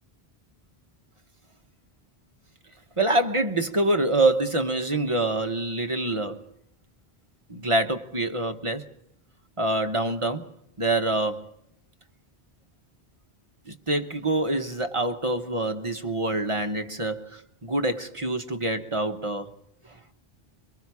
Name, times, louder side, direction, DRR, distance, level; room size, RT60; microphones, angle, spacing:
voice 1, 3.0-6.4 7.5-8.8 9.6-10.5 10.8-11.5 13.7-19.5, right 2 dB, 30° right, 1.0 m, -26 dB
23.5 x 23.0 x 4.8 m
omnidirectional pair, 1.0 m